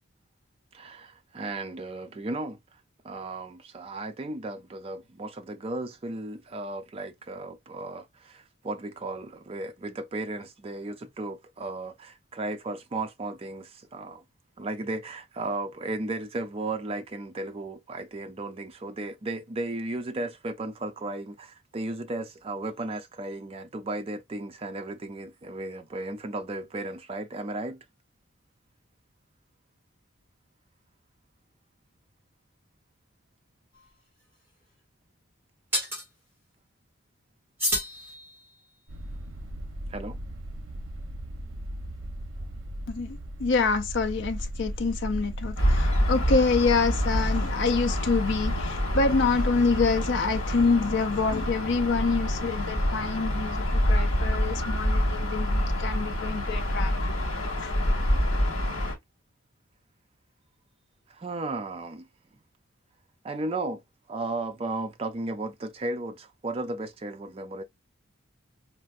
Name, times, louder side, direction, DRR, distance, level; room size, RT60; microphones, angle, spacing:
voice 1, 0.7-14.2 14.6-27.8 39.9-40.2 61.1-62.1 63.2-63.8 64.1-67.6, right 2 dB, 25° right, 0.4 m, -35 dB
sound 1, 33.7-33.9 35.7-36.1 37.6-38.7, equal, 10° right, 1.9 m, -30 dB
sound 2, 38.9-56.9, right 1 dB, 65° right, 0.7 m, -37 dB
voice 2, 42.9-56.9 57.6-57.7, left 4 dB, 55° left, 0.5 m, -26 dB
Gull seagull / Ocean, 45.6-59.0, equal, 75° left, 1.5 m, -27 dB
4.4 x 2.4 x 2.4 m
head